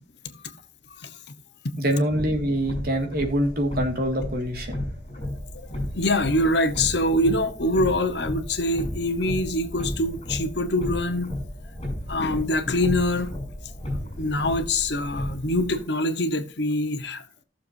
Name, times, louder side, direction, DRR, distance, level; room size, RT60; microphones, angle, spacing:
voice 1, 1.8-4.8, equal, 55° right, 2.1 m, -25 dB
sound 1, 2.1-15.8, left 1 dB, 35° left, 6.2 m, -34 dB
voice 2, 5.9-11.3 12.1-13.3 14.2-17.2, left 1 dB, 65° left, 1.2 m, -24 dB
16.0 x 6.9 x 2.7 m
head